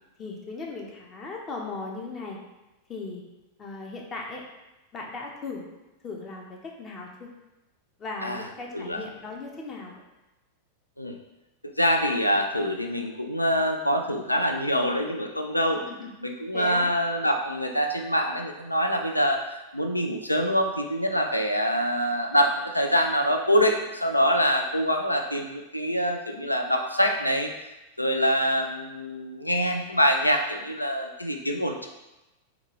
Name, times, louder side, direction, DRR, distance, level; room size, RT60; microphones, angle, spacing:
voice 1, 0.2-2.4 2.9-3.2 3.6-4.4 4.9-5.7 6.0-7.3 8.0-10.0 15.9-16.2 16.5-16.9, left 3 dB, 25° left, 0 dB, 0.7 m, -37 dB
voice 2, 8.7-9.0 11.0-11.2 11.6-15.8 16.2-27.5 28.0-31.9, equal, 90° left, 3 dB, 0.3 m, -25 dB
3.6 x 2.3 x 3.0 m, 1.0 s
figure-of-eight pair, 90°, 0 cm